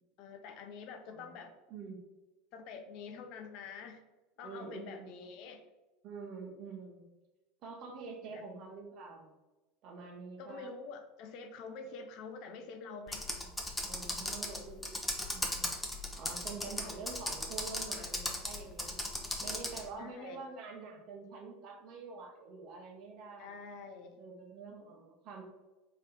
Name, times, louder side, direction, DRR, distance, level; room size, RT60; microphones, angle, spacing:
voice 1, 0.2-1.5 2.5-4.0 4.4-5.6 8.3-8.4 10.4-13.3 20.0-20.5 23.4-24.2, left 5 dB, 55° left, 6 dB, 0.6 m, -47 dB
voice 2, 1.7-2.0 4.4-5.2 6.0-7.1 7.6-9.3 9.8-10.7 13.3-13.5 13.8-15.8 16.2-19.1 19.4-23.5 24.2-25.4, right 4 dB, 50° right, 2 dB, 1.0 m, -46 dB
Computer keyboard, 13.1-19.9, left 1 dB, 10° left, 0.8 m, -37 dB
3.9 x 3.2 x 4.1 m, 1.1 s
figure-of-eight pair, 75°, 0 cm